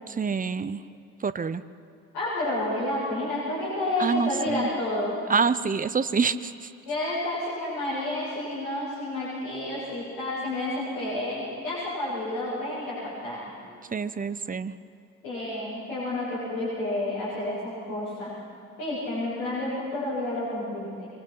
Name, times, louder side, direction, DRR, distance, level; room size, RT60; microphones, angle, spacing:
voice 1, 0.1-0.8 1.2-1.6 4.0-4.7 5.3-6.7 13.9-14.7, right 5 dB, 20° right, 14 dB, 0.8 m, -26 dB
voice 2, 2.1-5.1 6.8-13.4 15.2-18.4 18.8-21.1, left 1 dB, 60° left, -10 dB, 7.9 m, -30 dB
24.5 x 24.0 x 6.0 m, 2.7 s
figure-of-eight pair, 50°, 42 cm